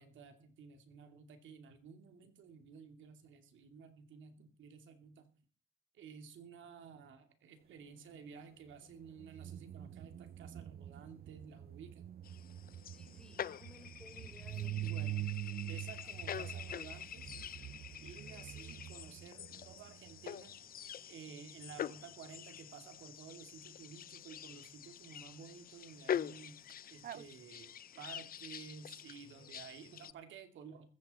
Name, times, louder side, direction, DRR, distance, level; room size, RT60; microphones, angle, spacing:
voice 1, 0.0-5.3 5.9-12.1 14.8-15.4 15.6-17.5 18.0-20.6 21.1-26.6 26.9-30.9, right 6 dB, 75° right, 7 dB, 2.6 m, -53 dB
sound 1, 8.9-20.5 26.7-26.8 27.0-27.2, right 13 dB, 50° right, 0.6 m, -45 dB
sound 2, 12.2-30.1, left 9 dB, 50° left, 0.5 m, -46 dB
voice 2, 12.8-14.9, left 2 dB, 5° left, 4 dB, 4.5 m, -59 dB
15.0 x 14.5 x 4.3 m, 0.43 s
cardioid pair, 90°, 20 cm